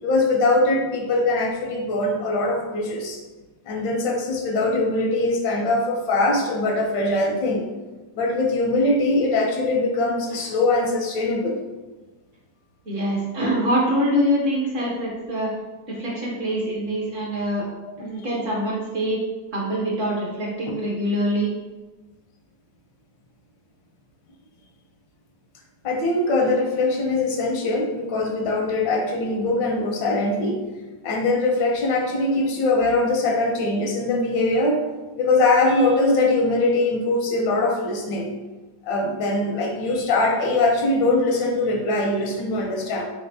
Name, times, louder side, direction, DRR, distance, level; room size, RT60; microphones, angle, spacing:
voice 1, 0.0-3.2 3.7-7.7 8.1-11.6 25.8-30.6 31.0-34.8 35.2-38.3 38.8-43.0, left 2 dB, 80° left, 1 dB, 1.5 m, -22 dB
voice 2, 12.9-15.5 15.9-17.6 18.0-19.2 19.5-21.5, equal, 55° right, -4 dB, 1.0 m, -24 dB
4.4 x 3.7 x 2.6 m, 1.2 s
omnidirectional pair, 2.0 m